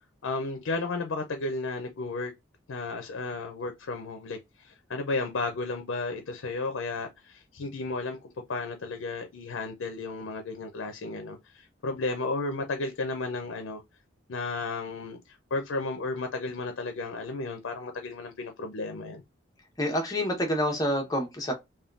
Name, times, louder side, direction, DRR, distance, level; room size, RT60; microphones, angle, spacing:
voice 1, 0.2-2.3 2.7-13.8 14.3-19.2, left 3 dB, 80° left, 0.5 m, -33 dB
voice 2, 19.8-21.5, equal, 20° left, 0.7 m, -27 dB
3.5 x 2.2 x 2.4 m
head